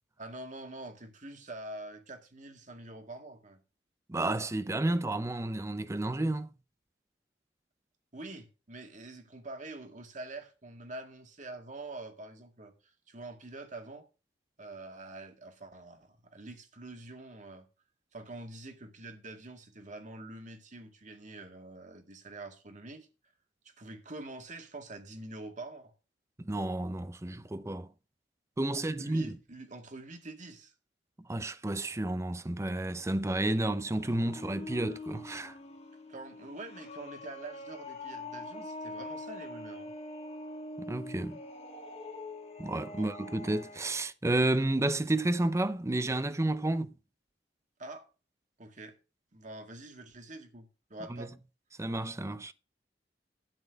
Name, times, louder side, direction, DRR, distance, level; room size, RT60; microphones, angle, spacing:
voice 1, 0.2-3.6 8.1-14.1 14.6-17.7 18.1-23.1 23.6-25.9 28.7-30.7 36.1-39.9 42.9-43.1 47.8-48.1 48.6-49.0 49.3-51.3, right 2 dB, 45° right, 1.9 m, -46 dB
voice 2, 4.1-6.5 26.4-27.9 28.6-29.4 31.2-35.6 40.8-41.4 42.6-46.9 51.1-51.3 51.8-52.5, right 1 dB, 15° right, 0.6 m, -31 dB
sound 1, 33.4-43.9, left 2 dB, 35° left, 2.0 m, -44 dB
12.5 x 4.2 x 8.0 m
head